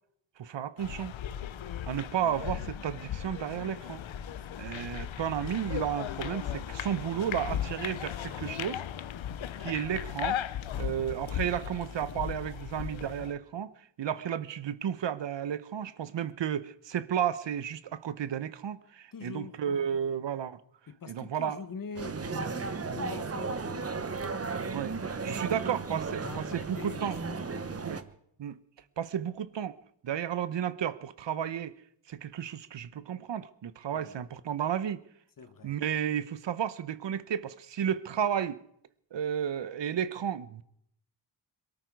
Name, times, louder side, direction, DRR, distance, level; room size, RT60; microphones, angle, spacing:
voice 1, 0.4-1.1 1.9-4.0 4.6-8.8 9.6-10.4 10.8-13.7 14.0-20.6 21.1-21.6 24.7-24.9 25.2-27.2 27.8-28.0 28.4-28.6 29.0-29.7 30.0-31.7 32.1-35.0 35.6-38.6 39.1-40.6, right 9 dB, 65° right, 1.0 m, -32 dB
sound 1, 0.8-13.3, left 10 dB, 75° left, 0.9 m, -37 dB
voice 2, 4.5-4.9 10.7-11.0 19.1-20.0 20.9-24.2 25.2-25.5 26.2-27.8 33.9-34.1 35.4-35.8, left 5 dB, 45° left, 1.3 m, -44 dB
sound 2, 22.0-28.0, right 4 dB, 30° right, 1.1 m, -35 dB
22.5 x 13.0 x 4.7 m
wide cardioid pair, 105°, 47 cm